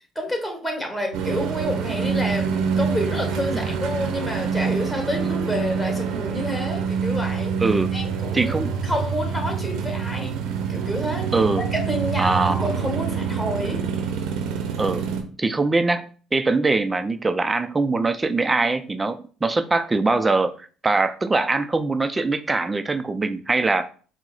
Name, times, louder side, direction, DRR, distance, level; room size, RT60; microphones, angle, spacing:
voice 1, 0.1-7.6 7.9-10.3 10.7-11.3 11.7-13.8, equal, 15° left, 1.4 m, -29 dB
sound 1, 1.1-15.2, right 6 dB, 80° right, 0.7 m, -26 dB
voice 2, 7.6-7.9 8.3-8.7 11.3-11.7 12.2-12.7 14.8-15.0 15.4-23.9, right 3 dB, 20° right, 0.4 m, -22 dB
4.5 x 2.0 x 4.0 m
supercardioid pair, 80°, 0 cm